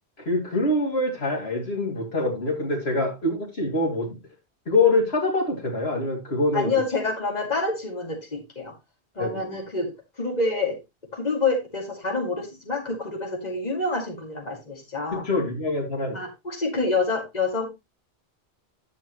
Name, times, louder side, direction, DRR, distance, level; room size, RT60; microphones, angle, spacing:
voice 1, 0.2-4.2 4.7-6.7 9.2-9.6 15.1-16.3, left 2 dB, 75° left, 2.9 m, -25 dB
voice 2, 6.5-8.7 9.2-9.9 10.2-10.8 11.1-15.2 16.1-17.7, left 3 dB, 40° left, 2.5 m, -27 dB
9.6 x 7.9 x 3.1 m
omnidirectional pair, 1.1 m